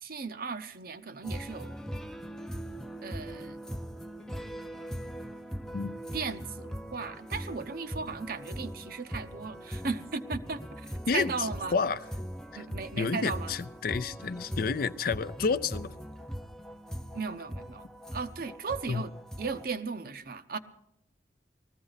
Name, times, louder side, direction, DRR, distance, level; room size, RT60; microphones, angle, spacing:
voice 1, 0.0-1.8 3.0-3.6 6.1-11.8 12.5-13.5 17.1-17.8 18.1-19.1 19.4-20.6, right 4 dB, 55° right, 11 dB, 0.7 m, -36 dB
sound 1, 1.2-19.6, equal, 5° left, 0.5 m, -40 dB
voice 2, 13.0-15.9 18.9-19.0, left 5 dB, 55° left, 12 dB, 0.5 m, -30 dB
19.0 x 14.5 x 4.0 m, 0.81 s
head